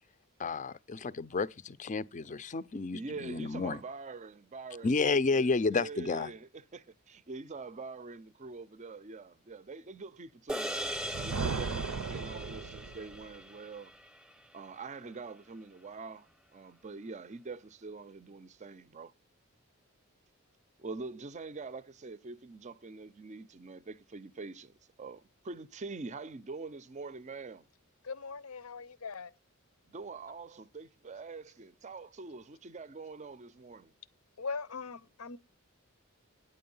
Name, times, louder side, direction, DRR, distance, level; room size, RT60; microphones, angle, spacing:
voice 1, 0.4-3.8 4.8-6.3, left 4 dB, 35° left, 0.5 m, -31 dB
voice 2, 2.9-13.9 14.5-19.1 20.8-27.7 29.9-33.9, right 3 dB, 35° right, 0.5 m, -45 dB
sound 1, 10.5-15.1, equal, 5° right, 0.8 m, -40 dB
Thunder, 10.7-13.4, right 5 dB, 80° right, 0.5 m, -37 dB
voice 3, 28.0-29.3 34.4-35.4, left 4 dB, 75° left, 0.7 m, -40 dB
9.5 x 7.7 x 5.4 m
head